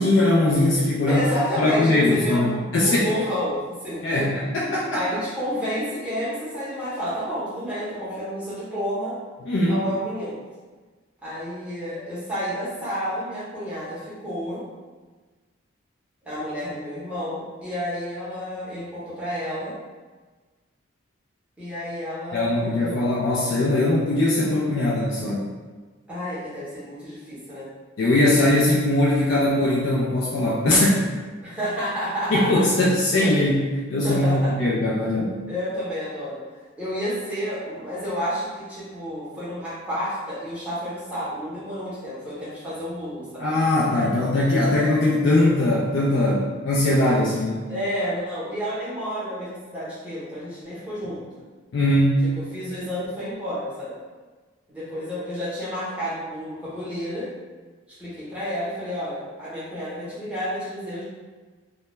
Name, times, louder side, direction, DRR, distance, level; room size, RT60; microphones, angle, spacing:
voice 1, 0.0-1.3 1.6-3.1 4.0-5.2 9.5-9.8 22.3-25.5 28.0-31.1 32.3-33.6 33.9-35.4 43.4-47.7 51.7-52.2, left 1 dB, 65° left, -5 dB, 0.3 m, -21 dB
voice 2, 1.1-4.3 4.9-9.1 9.7-10.4 11.2-14.6 16.2-19.7 21.6-23.0 26.1-27.7 31.4-32.6 33.2-33.3 34.0-34.5 35.5-36.4 36.8-43.5 47.7-51.2 52.5-54.0 54.7-57.3 58.0-61.0, equal, 5° right, -11 dB, 0.7 m, -30 dB
2.2 x 2.1 x 2.9 m, 1.3 s
head